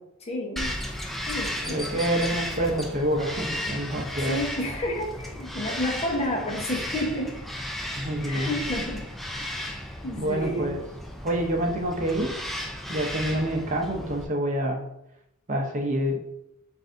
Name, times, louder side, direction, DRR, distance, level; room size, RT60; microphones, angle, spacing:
voice 1, 0.2-0.7 1.3-2.1 4.2-7.4 8.2-9.6 10.0-10.7, left 1 dB, 30° left, 0 dB, 0.9 m, -31 dB
Bird vocalization bird call bird song, 0.6-14.3, equal, ahead, 0.4 m, -34 dB
voice 2, 1.6-4.4 8.0-8.5 10.2-10.9 11.2-12.4 12.9-14.8 15.5-16.2, right 1 dB, 35° right, 1 dB, 0.7 m, -27 dB
7.7 x 2.6 x 2.6 m, 0.78 s
head